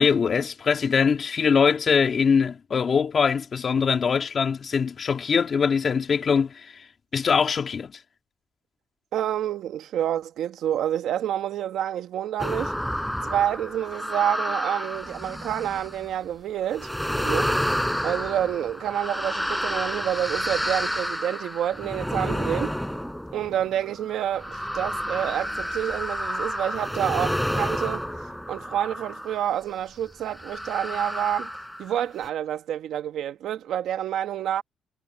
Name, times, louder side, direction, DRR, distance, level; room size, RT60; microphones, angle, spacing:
voice 1, 0.0-6.9 7.1-7.9, left 6 dB, 45° left, 2.8 m, -22 dB
voice 2, 9.1-12.8 13.2-16.9 17.2-17.6 18.0-22.8 23.3-31.5 31.8-34.6, right 10 dB, 75° right, 1.5 m, -28 dB
sound 1, 12.4-16.1 16.7-29.5 30.3-31.9 32.2-32.3, equal, ahead, 4.9 m, -30 dB
cardioid pair, 90°, 0 cm